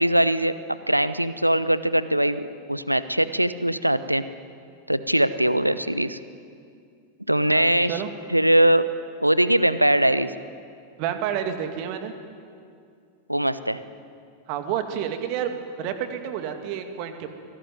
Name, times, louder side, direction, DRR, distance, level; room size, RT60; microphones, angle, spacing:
voice 1, 0.0-4.2 4.9-6.2 7.3-8.0 8.3-8.9 9.2-10.3 13.3-13.8, right 1 dB, 90° right, 14 dB, 0.8 m, -21 dB
voice 2, 7.5-8.1 11.0-12.1 14.5-17.3, right 9 dB, 45° right, 7 dB, 2.3 m, -29 dB
24.5 x 17.5 x 9.2 m, 2.3 s
figure-of-eight pair, 90°, 0 cm